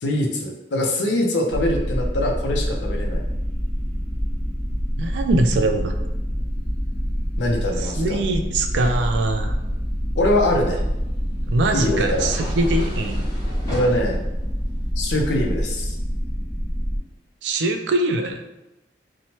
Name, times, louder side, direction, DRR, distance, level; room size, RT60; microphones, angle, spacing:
voice 1, 0.0-3.2 7.4-8.2 10.2-10.8 11.7-12.3 13.7-14.2 15.0-16.0, left 1 dB, 85° left, 1 dB, 0.5 m, -23 dB
sound 1, 1.5-17.0, equal, 25° right, 0.7 m, -26 dB
voice 2, 5.0-5.9 7.8-9.6 11.5-13.2 17.4-18.4, right 2 dB, 85° right, 5 dB, 0.3 m, -22 dB
sound 2, 10.4-15.9, equal, 20° left, 0.7 m, -34 dB
2.8 x 2.1 x 2.8 m, 0.94 s
head